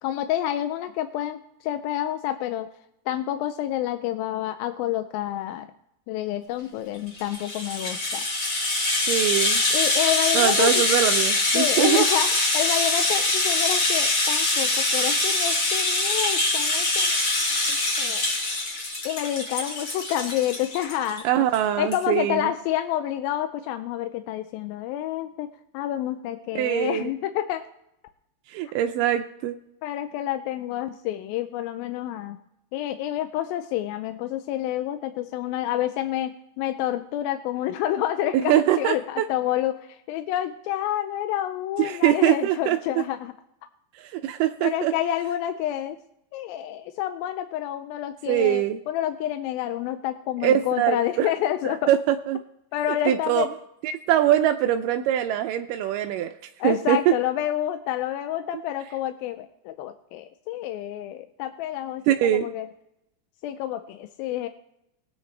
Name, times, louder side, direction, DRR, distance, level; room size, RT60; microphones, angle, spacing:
voice 1, 0.0-2.7 3.1-5.7 6.1-8.2 9.7-10.7 11.5-17.2 17.7-18.3 19.0-21.5 21.8-25.5 25.7-27.6 29.8-32.4 32.7-43.3 44.6-46.0 46.3-51.9 52.7-53.5 56.6-62.7 63.4-64.5, left 12 dB, 80° left, 9 dB, 2.3 m, -28 dB
Rattle (instrument), 7.1-21.2 21.5-21.6 21.9-22.0, left 2 dB, 40° left, 3.1 m, -24 dB
voice 2, 9.1-9.6 10.3-12.1 21.2-22.5 26.6-27.1 28.5-29.6 38.4-39.3 41.8-42.8 44.0-44.9 48.3-48.8 50.4-51.3 51.7-52.4 52.9-53.5 53.8-56.3 56.6-57.2 62.1-62.5, right 11 dB, 85° right, 6 dB, 1.9 m, -23 dB
19.5 x 9.0 x 3.3 m, 0.82 s
omnidirectional pair, 4.3 m